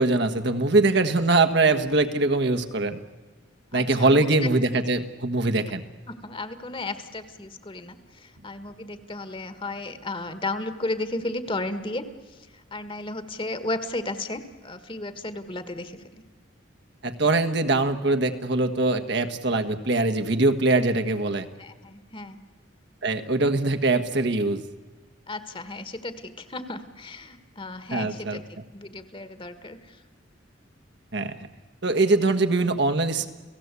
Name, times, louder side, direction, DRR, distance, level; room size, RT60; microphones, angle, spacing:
voice 1, 0.0-3.0 3.7-5.8 17.0-21.5 23.0-24.6 27.9-28.4 31.1-31.3 31.8-33.3, right 2 dB, 60° right, 7 dB, 1.5 m, -22 dB
voice 2, 3.7-4.5 6.1-12.1 12.7-16.1 21.6-22.4 25.3-30.0, left 2 dB, 25° left, 11 dB, 1.6 m, -34 dB
29.5 x 17.5 x 8.3 m, 1.3 s
head